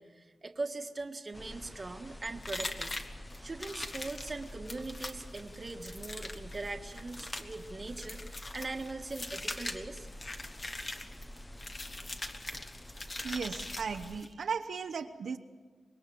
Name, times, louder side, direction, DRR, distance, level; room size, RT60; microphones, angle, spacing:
voice 1, 0.0-3.0 3.4-10.1, right 3 dB, 30° right, 5 dB, 1.5 m, -41 dB
sound 1, 1.3-14.2, left 1 dB, 10° left, 0.8 m, -48 dB
sound 2, 2.4-14.3, left 2 dB, 30° left, 1.5 m, -42 dB
voice 2, 13.2-15.4, right 6 dB, 70° right, 6 dB, 0.9 m, -36 dB
25.5 x 21.5 x 7.8 m, 1.5 s
wide cardioid pair, 150°, 0 cm